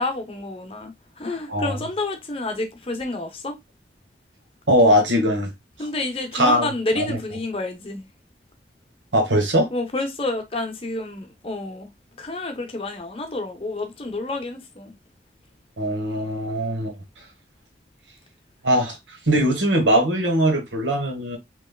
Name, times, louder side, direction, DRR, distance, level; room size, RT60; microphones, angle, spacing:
voice 1, 0.0-3.6 5.8-8.0 9.7-11.9 12.2-14.9, left 2 dB, 30° left, 0.7 m, -29 dB
voice 2, 4.7-5.5 6.3-6.7 7.0-7.2 9.1-9.7 15.8-16.9 18.6-19.0 19.3-21.4, equal, 90° right, 1.2 m, -20 dB
3.5 x 3.0 x 2.2 m
head